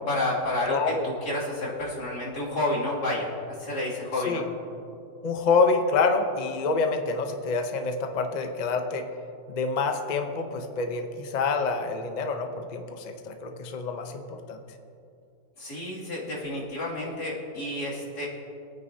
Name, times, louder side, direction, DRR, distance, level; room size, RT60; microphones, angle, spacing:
voice 1, 0.1-4.4 15.6-18.3, left 1 dB, 60° left, -6 dB, 3.1 m, -30 dB
voice 2, 0.7-1.1 4.2-4.4 5.2-9.1 9.5-14.6, left 4 dB, 90° left, 5 dB, 0.3 m, -27 dB
23.0 x 9.3 x 2.8 m, 2.6 s
omnidirectional pair, 2.0 m